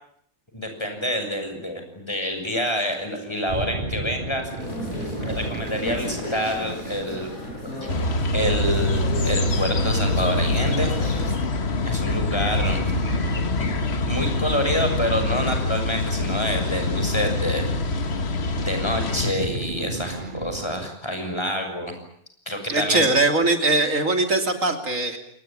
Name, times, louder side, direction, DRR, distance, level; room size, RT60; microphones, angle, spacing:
voice 1, 0.5-4.5 5.3-7.3 7.6-8.0 8.3-10.9 11.8-12.8 13.5-13.7 14.0-17.7 18.5-21.9 22.4-23.1, equal, 20° left, 5 dB, 6.8 m, -27 dB
sound 1, 3.5-20.9, right 2 dB, 35° right, 2.3 m, -36 dB
sound 2, 4.6-11.4, left 1 dB, 75° left, 5.3 m, -34 dB
sound 3, 7.9-19.3, left 2 dB, 45° left, 1.6 m, -25 dB
voice 2, 22.7-25.2, right 2 dB, 65° right, 6 dB, 3.5 m, -21 dB
28.5 x 20.0 x 8.9 m, 0.68 s
omnidirectional pair, 1.5 m